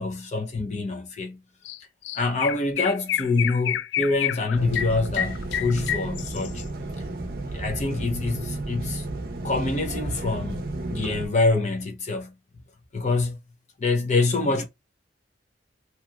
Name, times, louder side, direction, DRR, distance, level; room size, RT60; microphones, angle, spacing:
voice 1, 0.0-1.4 2.1-6.6 7.5-9.1 9.4-12.3 12.9-13.4 13.8-14.7, left 3 dB, 40° left, 0.7 m, -26 dB
Chirp tweet, 1.6-1.8 2.0-6.6, left 10 dB, 70° left, 0.3 m, -28 dB
sound 1, 4.5-11.3, right 2 dB, 55° right, 0.6 m, -32 dB
3.1 x 2.8 x 2.3 m
head